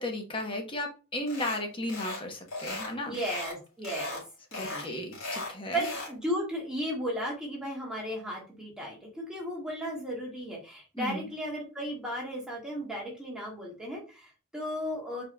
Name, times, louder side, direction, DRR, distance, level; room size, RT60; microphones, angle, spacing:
voice 1, 0.0-3.2 4.5-5.8 11.0-11.3, left 1 dB, 25° left, 3 dB, 1.0 m, -35 dB
sound 1, 1.3-1.6 1.9-2.2 2.5-3.6 3.8-4.2 4.5-6.1, left 2 dB, 75° left, 2.5 m, -37 dB
voice 2, 3.1-4.2 4.5-4.8 5.7-15.2, equal, 5° right, -3 dB, 1.6 m, -35 dB
4.7 x 4.6 x 2.2 m, 0.32 s
head